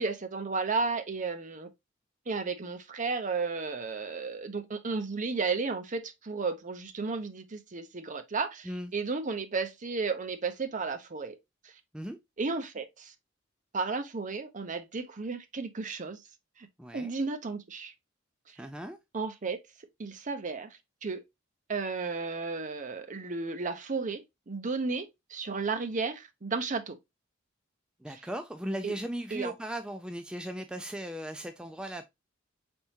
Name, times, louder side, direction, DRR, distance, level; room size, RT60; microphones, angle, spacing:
voice 1, 0.0-1.7 2.3-11.4 11.6-11.8 12.4-13.1 13.7-16.2 16.6-16.7 16.9-17.9 18.5-18.6 19.1-19.6 20.0-21.2 21.7-27.0 28.1-28.2 28.8-28.9 29.3-29.5, right 4 dB, 40° right, 0.7 m, -33 dB
voice 2, 16.8-17.1 18.6-19.0 28.0-32.0, right 1 dB, 5° right, 0.3 m, -37 dB
5.2 x 3.5 x 2.9 m
head